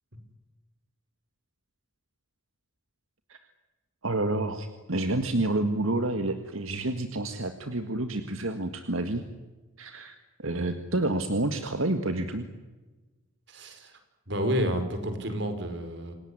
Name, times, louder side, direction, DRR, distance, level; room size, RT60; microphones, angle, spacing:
voice 1, 4.0-9.2 9.8-12.5, right 2 dB, 85° right, 8 dB, 1.8 m, -29 dB
voice 2, 13.5-13.9 14.3-16.1, equal, 60° right, 8 dB, 4.9 m, -30 dB
28.0 x 17.5 x 9.8 m, 1.2 s
head